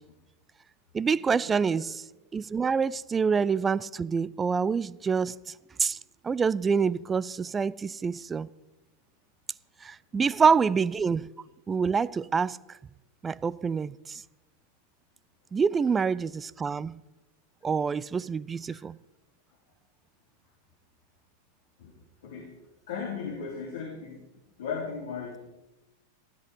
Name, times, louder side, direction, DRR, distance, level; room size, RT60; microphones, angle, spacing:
voice 1, 0.9-2.0 2.3-5.3 5.8-6.0 6.2-8.5 9.8-11.3 11.7-12.6 13.2-14.2 15.5-16.9 17.6-19.0, right 5 dB, 15° right, 0.3 m, -26 dB
voice 2, 22.9-24.2 24.6-25.4, left 5 dB, 60° left, 3.1 m, -36 dB
13.5 x 13.0 x 4.9 m
figure-of-eight pair, 90°, 0 cm